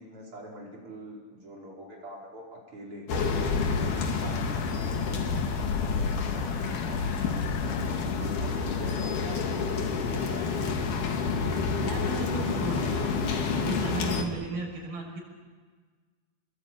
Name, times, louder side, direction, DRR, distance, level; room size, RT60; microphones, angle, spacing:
voice 1, 0.0-3.1 3.7-5.4 5.8-7.0 7.6-10.7 14.2-14.3, right 1 dB, 35° right, -3 dB, 5.5 m, -45 dB
sound 1, 3.1-14.2, left 5 dB, 60° left, 3.3 m, -29 dB
sound 2, 3.3-11.0, left 7 dB, 80° left, 2.9 m, -40 dB
voice 2, 11.8-15.2, right 2 dB, 85° right, -1 dB, 8.3 m, -35 dB
26.5 x 22.0 x 8.9 m, 1.5 s
omnidirectional pair, 4.3 m